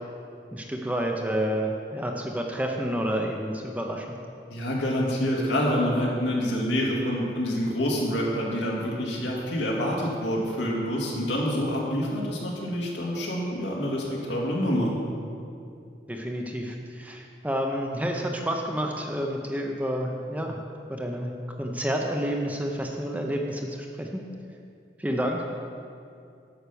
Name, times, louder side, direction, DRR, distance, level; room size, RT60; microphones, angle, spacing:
voice 1, 0.5-4.1 16.1-20.6 20.9-21.3 21.6-24.2 25.0-25.4, equal, 10° right, 1 dB, 0.6 m, -29 dB
voice 2, 4.5-14.9, equal, 85° left, -3 dB, 2.0 m, -27 dB
9.1 x 5.8 x 6.9 m, 2.5 s
head